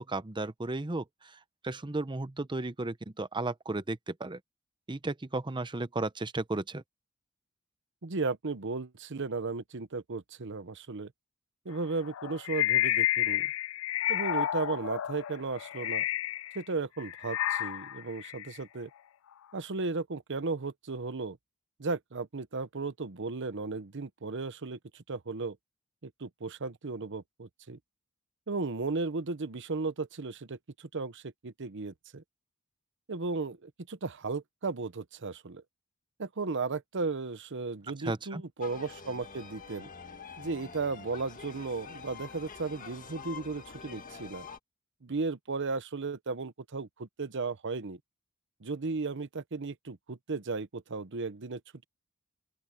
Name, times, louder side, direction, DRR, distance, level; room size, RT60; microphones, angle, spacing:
voice 1, 0.0-4.4 4.9-6.8 38.0-38.4, right 2 dB, 20° right, 0.8 m, -34 dB
voice 2, 8.0-11.1 11.6-13.5 14.1-16.0 16.5-18.9 19.5-21.4 21.8-25.6 26.0-27.8 28.5-32.2 33.1-35.6 36.2-39.9 40.4-44.5 45.0-48.0 48.6-51.8, right 3 dB, 60° right, 0.9 m, -35 dB
sound 1, 12.0-16.6 17.0-18.6, left 13 dB, 70° left, 0.4 m, -31 dB
sound 2, 38.6-44.6, left 5 dB, 40° left, 1.7 m, -46 dB
open air
head